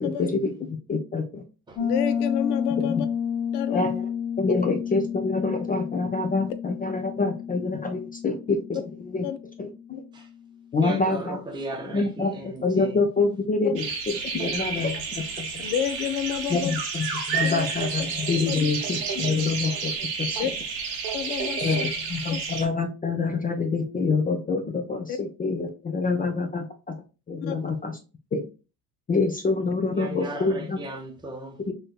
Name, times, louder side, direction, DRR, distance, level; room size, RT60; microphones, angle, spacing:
voice 1, 0.0-1.4 2.9-3.0 3.7-4.1 4.4-9.3 9.6-10.0 10.7-11.4 11.9-15.7 16.5-19.9 20.2-20.5 21.6-27.0 27.3-28.0 28.3-28.4 29.1-30.8 31.6-31.7, left 3 dB, 20° left, 0.4 m, -26 dB
Piano, 1.8-10.3, left 7 dB, 85° left, 1.2 m, -31 dB
voice 2, 1.8-3.1 3.5-3.9 4.5-4.6 9.2-9.4 10.9-11.0 13.6-13.8 15.6-16.8 17.4-17.7 18.5-18.6 20.4-20.5 21.1-21.9 22.3-22.4 25.1-25.2 27.4-27.6, left 9 dB, 65° left, 0.6 m, -29 dB
voice 3, 10.8-13.0 15.6-15.7 29.9-31.6, right 2 dB, 10° right, 0.8 m, -36 dB
sound 1, 13.8-22.7, right 5 dB, 80° right, 0.8 m, -30 dB
3.2 x 3.1 x 2.3 m
hypercardioid pair, 55°, 49 cm